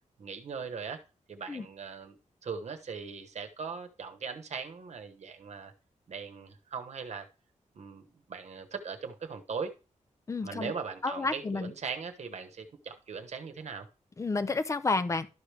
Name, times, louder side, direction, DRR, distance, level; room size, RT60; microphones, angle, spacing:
voice 1, 0.2-1.0 1.3-5.7 6.1-7.3 7.7-9.7 10.4-13.9, right 5 dB, 60° right, 1.1 m, -40 dB
voice 2, 10.3-10.7 11.0-11.7 14.2-15.3, left 3 dB, 25° left, 0.5 m, -30 dB
12.5 x 5.0 x 3.3 m
wide cardioid pair, 160°, 13 cm